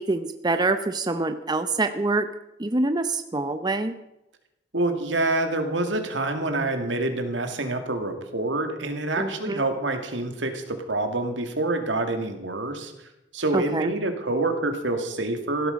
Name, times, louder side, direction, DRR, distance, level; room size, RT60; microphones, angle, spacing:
voice 1, 0.0-2.3 2.6-3.9 9.2-9.6 13.5-13.9, right 2 dB, 25° right, 9 dB, 0.7 m, -25 dB
voice 2, 4.7-12.9 13.3-15.7, right 2 dB, 85° right, 6 dB, 2.3 m, -27 dB
16.0 x 12.5 x 5.2 m, 0.91 s
head